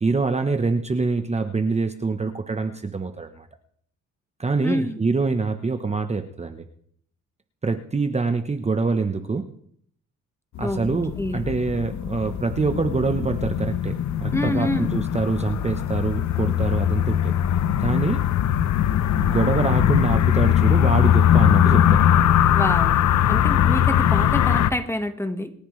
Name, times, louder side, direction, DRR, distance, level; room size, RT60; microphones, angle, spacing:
voice 1, 0.0-3.5 4.4-6.7 7.6-9.5 10.6-17.3 17.8-18.2 19.2-22.2, right 4 dB, 20° right, 7 dB, 1.0 m, -25 dB
voice 2, 4.6-5.0 10.6-10.8 11.2-11.5 14.3-14.9 22.5-23.0 23.3-25.5, left 1 dB, 10° left, 7 dB, 1.5 m, -27 dB
sound 1, 10.5-24.7, left 10 dB, 70° left, 0.8 m, -20 dB
26.5 x 10.0 x 3.3 m, 0.65 s
cardioid pair, 90°, 30 cm